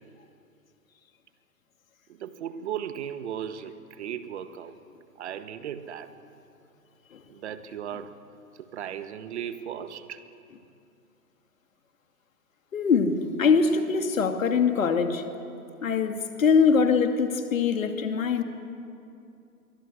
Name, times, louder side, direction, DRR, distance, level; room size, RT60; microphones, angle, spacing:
voice 1, 2.2-4.7 5.2-6.1 7.3-8.1 8.6-10.2, right 9 dB, 45° right, 1.7 m, -36 dB
voice 2, 12.7-15.2 15.8-18.4, left 5 dB, 60° left, 2.6 m, -23 dB
28.0 x 24.0 x 8.2 m
figure-of-eight pair, 120°, 46 cm